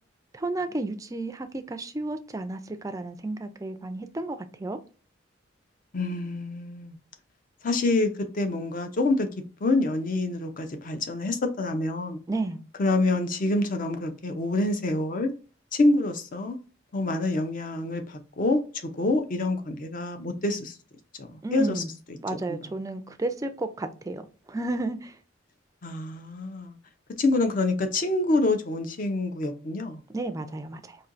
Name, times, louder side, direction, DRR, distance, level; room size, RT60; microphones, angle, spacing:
voice 1, 0.3-4.8 12.3-12.6 21.4-21.9 22.2-24.2 24.5-25.2 30.1-31.0, right 2 dB, 15° right, 0.3 m, -32 dB
voice 2, 5.9-7.0 7.6-9.3 9.6-12.2 12.8-15.3 15.7-16.6 16.9-20.8 21.2-21.8 22.5-22.6 25.8-26.8 27.2-30.0, left 2 dB, 45° left, 0.6 m, -26 dB
4.3 x 2.6 x 2.5 m
head